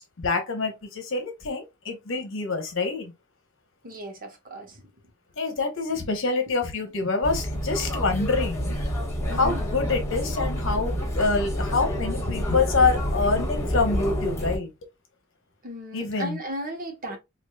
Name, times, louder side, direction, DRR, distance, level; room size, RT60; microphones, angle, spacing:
voice 1, 0.2-3.1 5.4-8.7 9.4-14.7 15.9-16.4, left 4 dB, 65° left, 1.1 m, -26 dB
voice 2, 3.8-4.9 9.3-9.6 15.6-17.2, equal, 40° right, 1.0 m, -35 dB
sound 1, 7.2-14.6, equal, 15° left, 1.4 m, -28 dB
4.8 x 2.5 x 2.3 m
head